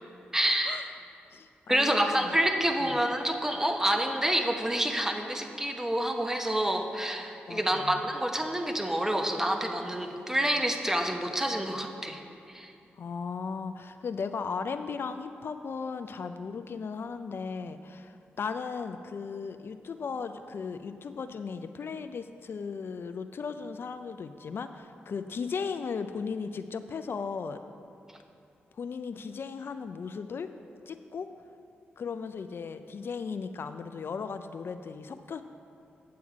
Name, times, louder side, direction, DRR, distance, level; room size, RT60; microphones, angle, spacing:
voice 1, 0.3-0.9 1.7-12.2 12.5-12.7, right 1 dB, 10° right, 4 dB, 1.0 m, -28 dB
voice 2, 1.3-2.3 2.8-2.9 7.5-8.0 13.0-27.6 28.8-30.5 30.9-31.3 32.0-35.4, left 5 dB, 60° left, 9 dB, 0.4 m, -36 dB
8.6 x 7.0 x 4.8 m, 2.6 s
supercardioid pair, 40°, 4 cm